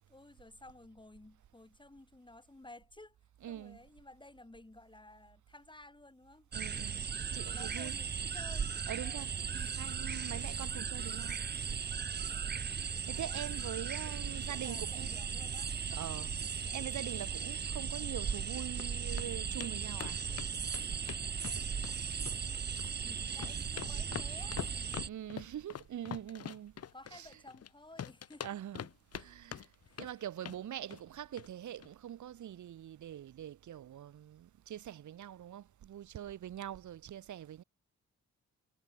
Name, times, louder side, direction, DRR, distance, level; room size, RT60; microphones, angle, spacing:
voice 1, 0.0-3.2 3.5-6.5 7.5-9.3 13.1-13.4 14.0-15.7 23.1-24.6 26.9-28.5 29.2-29.3 29.9-30.1, left 2 dB, 15° left, 7.5 m, -54 dB
voice 2, 3.4-3.8 6.5-7.0 7.3-7.9 8.9-11.4 13.1-15.1 15.9-16.3 16.7-20.2 25.0-26.7 27.1-27.3 28.4-28.9 29.1-29.7 30.0-37.6, right 11 dB, 80° right, 3.0 m, -43 dB
sound 1, 6.5-25.1, right 6 dB, 35° right, 0.8 m, -37 dB
sound 2, 18.3-18.9 19.2-19.3 19.6-19.7 20.0-22.0 22.3-22.9 23.2-27.7 28.0-29.3 29.5-30.1 30.4-30.6 30.9-31.1 31.4-31.5 31.8-31.9, left 9 dB, 55° left, 1.2 m, -44 dB
cardioid pair, 65°, 29 cm